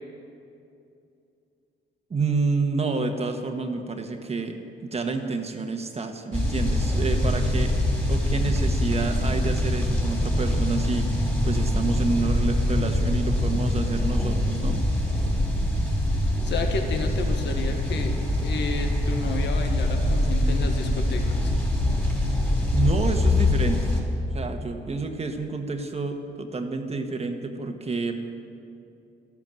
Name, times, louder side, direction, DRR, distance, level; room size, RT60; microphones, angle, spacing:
voice 1, 2.1-7.8 8.1-11.1 11.4-14.8 22.7-23.9 24.3-28.2, right 3 dB, 30° right, 5 dB, 1.3 m, -29 dB
sound 1, 6.3-24.0, left 1 dB, 10° left, 3.7 m, -24 dB
voice 2, 16.4-21.5, left 4 dB, 60° left, 4 dB, 1.4 m, -32 dB
13.5 x 12.0 x 7.6 m, 2.7 s
cardioid pair, 90°, 20 cm